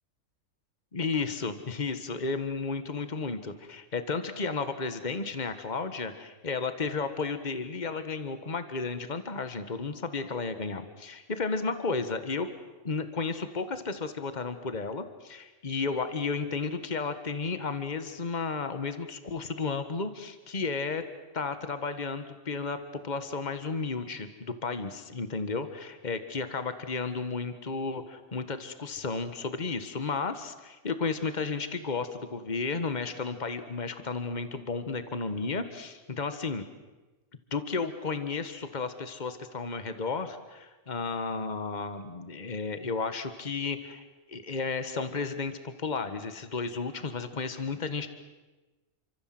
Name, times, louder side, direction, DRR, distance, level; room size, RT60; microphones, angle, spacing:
voice 1, 0.9-12.5 12.8-21.0 21.3-36.6 37.5-48.1, left 4 dB, 35° left, 10 dB, 1.7 m, -33 dB
29.0 x 25.5 x 7.8 m, 1.2 s
omnidirectional pair, 1.3 m